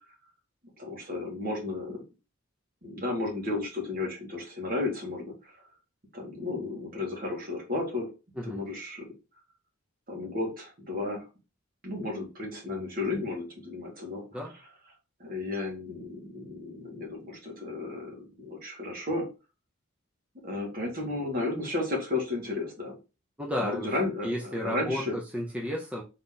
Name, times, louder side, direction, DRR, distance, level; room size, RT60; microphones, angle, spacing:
voice 1, 0.8-2.0 2.8-5.3 6.1-8.1 8.4-9.1 10.1-11.2 11.8-14.2 15.2-19.3 20.4-23.0 23.6-25.1, left 2 dB, 45° right, 0 dB, 1.7 m, -33 dB
voice 2, 23.4-23.9 24.2-26.0, left 1 dB, 5° right, -2 dB, 0.7 m, -32 dB
3.9 x 3.0 x 3.7 m, 0.29 s
head